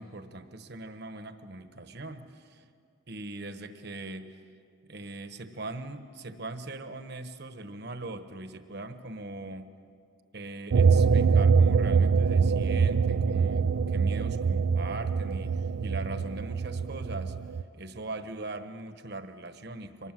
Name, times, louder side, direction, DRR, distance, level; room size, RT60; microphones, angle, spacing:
voice 1, 0.0-2.6 3.1-4.4 4.9-9.7 10.3-17.4 17.7-20.1, right 2 dB, 50° right, 9 dB, 1.2 m, -40 dB
sound 1, 10.7-17.6, right 5 dB, 80° right, 0.5 m, -24 dB
24.5 x 20.0 x 7.6 m, 2.3 s
head